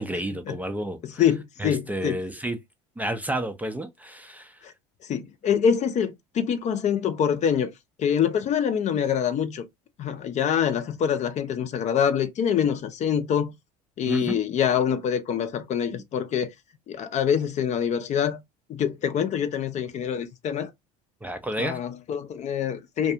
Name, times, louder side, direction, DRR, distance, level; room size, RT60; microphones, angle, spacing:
voice 1, 0.0-1.0 1.6-2.6 3.0-4.6 14.1-14.4 21.2-21.8, right 1 dB, 10° right, 0.4 m, -30 dB
voice 2, 1.0-2.2 4.6-4.7 5.1-7.7 8.0-9.7 10.0-13.5 14.0-16.5 16.9-18.4 18.7-20.7 21.6-23.1, left 8 dB, 40° left, 0.5 m, -25 dB
2.3 x 2.3 x 2.7 m
hypercardioid pair, 85°, 18 cm